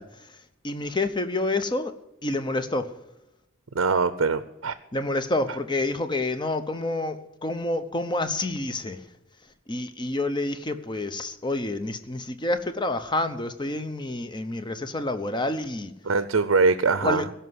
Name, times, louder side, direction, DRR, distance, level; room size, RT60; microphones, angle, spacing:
voice 1, 0.0-2.0 2.2-2.9 4.9-9.1 9.7-15.9 17.0-17.3, left 2 dB, 20° left, 10 dB, 0.8 m, -28 dB
voice 2, 3.7-4.7 16.1-17.2, right 4 dB, 70° right, 12 dB, 0.6 m, -22 dB
16.5 x 5.7 x 9.5 m, 0.93 s
head